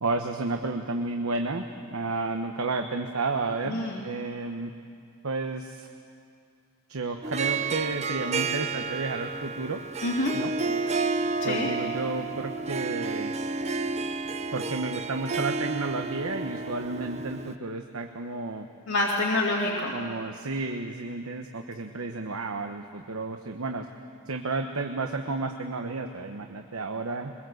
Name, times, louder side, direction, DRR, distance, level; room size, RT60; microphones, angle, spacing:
voice 1, 0.0-1.6 1.9-4.7 5.2-5.9 6.9-9.8 10.3-10.5 11.4-13.3 14.5-18.7 19.9-23.9 24.3-27.3, right 3 dB, 80° right, 5 dB, 1.1 m, -32 dB
voice 2, 3.6-4.0 10.0-10.3 11.4-11.7 18.9-20.0, left 2 dB, 75° left, -3 dB, 2.4 m, -27 dB
Harp, 7.2-17.5, right 4 dB, 30° right, 0.7 m, -31 dB
23.0 x 21.5 x 7.9 m, 2.3 s
head